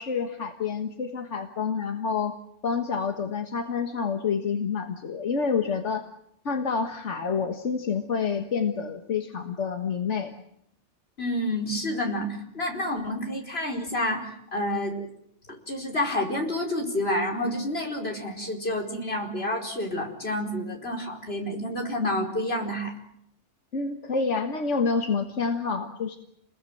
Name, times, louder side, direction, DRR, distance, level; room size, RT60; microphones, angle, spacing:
voice 1, 0.0-2.4 2.6-6.1 6.5-10.3 23.7-26.2, left 5 dB, 85° left, 5 dB, 1.8 m, -28 dB
voice 2, 11.2-15.1 15.5-22.9, left 1 dB, 60° left, 1 dB, 5.0 m, -29 dB
29.5 x 21.0 x 7.8 m, 0.75 s
omnidirectional pair, 1.2 m